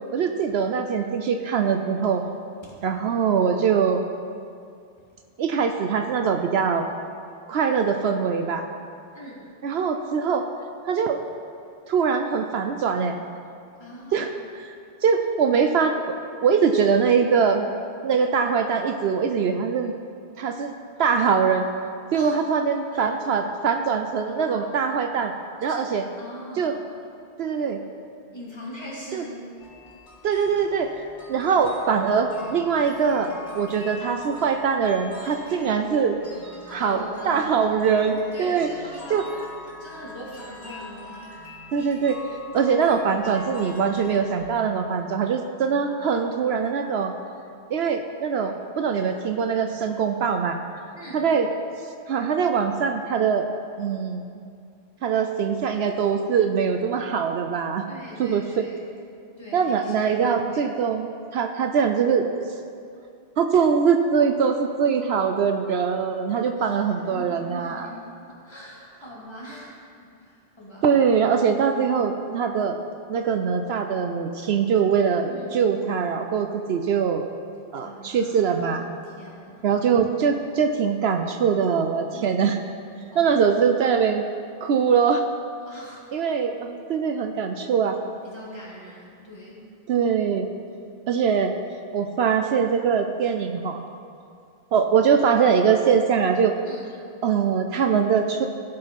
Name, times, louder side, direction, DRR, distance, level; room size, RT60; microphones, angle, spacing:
voice 1, 0.1-2.3 2.8-4.1 5.4-6.9 7.5-8.6 9.6-10.4 10.8-11.2 11.9-13.2 14.1-14.3 14.6-14.8 15.0-16.2 16.4-17.7 18.0-19.9 20.4-20.7 21.0-21.7 22.1-25.3 25.6-26.0 26.6-26.7 27.4-27.8 29.1-29.2 30.2-30.9 31.3-36.2 36.7-38.7 39.1-39.2 41.7-42.2 42.5-47.1 47.7-50.6 51.1-51.5 52.1-53.4 53.8-54.2 55.0-57.9 58.2-58.7 59.5-62.3 63.4-67.9 70.8-72.8 73.1-77.3 77.7-78.9 79.6-82.6 83.1-84.2 84.6-85.2 86.1-88.0 89.9-90.5 91.1-91.5 91.9-93.8 94.7-96.5 97.2-98.5, right 6 dB, 70° right, 6 dB, 0.8 m, -22 dB
voice 2, 9.1-9.5 13.8-14.3 22.1-22.4 22.9-23.1 24.2-24.7 25.6-25.9 26.2-26.8 28.3-29.5 36.7-37.4 38.3-39.5 39.8-41.3 45.8-46.2 50.9-51.3 57.9-58.8 59.4-60.1 60.4-60.7 66.8-68.0 68.3-70.9 75.2-75.5 77.8-78.6 79.2-79.7 82.1-82.4 83.1-83.3 85.7-86.0 88.2-89.7 96.7-96.9, equal, 25° left, -6 dB, 2.7 m, -41 dB
sound 1, 29.6-44.5, left 2 dB, 75° left, 2.5 m, -43 dB
17.0 x 5.7 x 5.3 m, 2.4 s
omnidirectional pair, 1.1 m